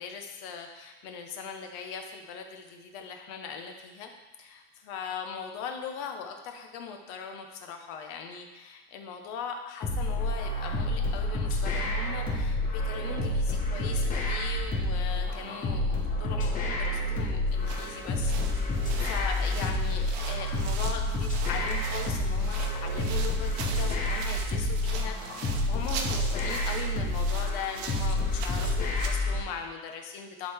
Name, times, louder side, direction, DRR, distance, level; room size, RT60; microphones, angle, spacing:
voice 1, 0.0-4.1 4.4-30.5, left 6 dB, 55° left, 4 dB, 1.1 m, -40 dB
sound 1, 9.8-29.4, left 1 dB, 25° left, 1.1 m, -29 dB
sound 2, 17.5-29.3, right 5 dB, 75° right, 0.9 m, -42 dB
11.0 x 3.9 x 3.5 m, 1.2 s
cardioid pair, 155°, 33 cm